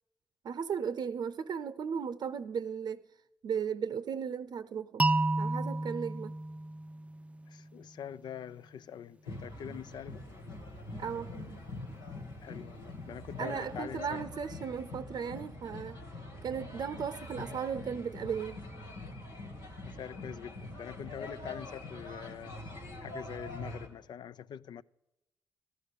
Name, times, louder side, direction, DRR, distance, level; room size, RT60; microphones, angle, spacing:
voice 1, 0.4-3.0 3.4-5.0 5.4-6.3 11.0-11.6 13.4-16.0 16.4-18.6, right 7 dB, 70° right, 0.6 m, -36 dB
sound 1, 5.0-7.9, right 2 dB, 15° right, 0.5 m, -32 dB
voice 2, 7.5-10.2 12.4-14.2 19.9-22.6 23.0-24.8, left 9 dB, 75° left, 0.4 m, -44 dB
sound 2, 9.2-23.9, left 2 dB, 90° left, 2.3 m, -44 dB
14.0 x 12.5 x 6.6 m
supercardioid pair, 40°, 8 cm